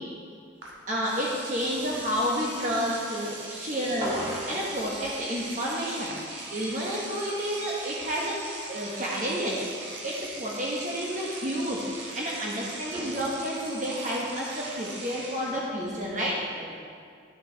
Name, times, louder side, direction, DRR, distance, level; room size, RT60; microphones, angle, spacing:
Engine / Domestic sounds home sounds, 0.6-0.7 1.0-15.7, right 2 dB, 85° right, 1.5 m, -40 dB
voice 1, 0.9-4.2 4.5-9.6 10.0-16.4, equal, 40° right, -5 dB, 1.2 m, -30 dB
voice 2, 4.0-4.5 12.9-13.4 15.5-15.6 16.5-16.8, equal, 20° right, -4 dB, 1.5 m, -36 dB
11.0 x 6.7 x 4.5 m, 2.2 s
head